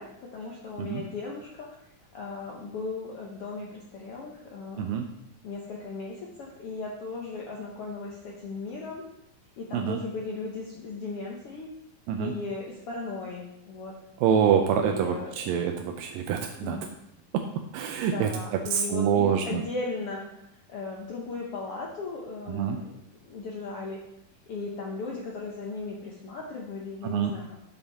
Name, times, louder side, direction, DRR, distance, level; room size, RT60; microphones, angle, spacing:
voice 1, 0.0-1.8 2.1-5.1 5.4-9.0 9.6-11.7 12.2-13.9 14.7-15.5 16.6-16.9 18.1-20.3 20.7-22.9 23.2-24.0 24.5-27.6, left 3 dB, 65° left, -2 dB, 1.5 m, -37 dB
voice 2, 14.2-16.8 17.7-18.3 18.7-19.6 22.5-22.8 27.0-27.3, right 8 dB, 85° right, 4 dB, 2.4 m, -26 dB
9.4 x 7.0 x 3.6 m, 0.83 s
omnidirectional pair, 4.0 m